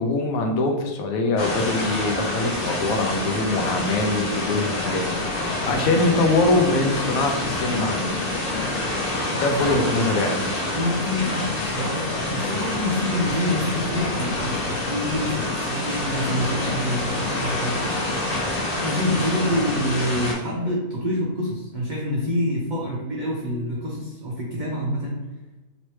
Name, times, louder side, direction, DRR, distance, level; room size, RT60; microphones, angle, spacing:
voice 1, 0.0-8.2 9.4-10.5, left 2 dB, 70° left, 3 dB, 0.9 m, -23 dB
sound 1, 1.4-20.3, left 2 dB, 45° left, 0.9 m, -27 dB
voice 2, 9.3-9.6 10.7-17.8 18.8-25.3, left 1 dB, 85° right, -4 dB, 0.4 m, -27 dB
3.1 x 2.9 x 3.0 m, 1.1 s
omnidirectional pair, 1.6 m